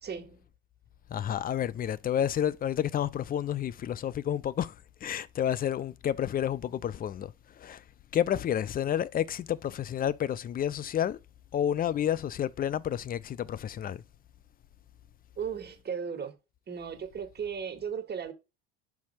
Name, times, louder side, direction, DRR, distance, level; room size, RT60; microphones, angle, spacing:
voice 1, 0.0-0.4 15.4-16.4 16.7-18.3, right 7 dB, 35° right, 1.7 m, -36 dB
voice 2, 1.1-4.7 5.0-7.3 7.6-7.8 8.1-11.2 11.5-14.0, left 10 dB, 30° left, 0.5 m, -30 dB
5.9 x 4.2 x 4.2 m
hypercardioid pair, 75°, 30 cm